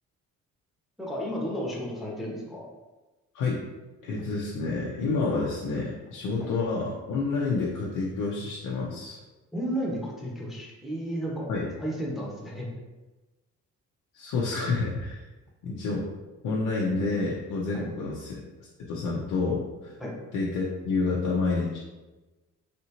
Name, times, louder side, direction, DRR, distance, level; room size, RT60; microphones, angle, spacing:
voice 1, 1.0-2.7 6.4-6.5 9.5-11.5 11.8-12.7 17.7-17.8 20.0-20.1, equal, ahead, -4 dB, 0.8 m, -33 dB
voice 2, 4.0-9.2 11.5-11.7 14.1-15.2 15.6-16.1 16.4-18.4 18.9-19.9 20.3-21.8, left 3 dB, 85° left, -4 dB, 0.6 m, -29 dB
3.3 x 2.8 x 2.8 m, 1.2 s
cardioid pair, 90°, 30 cm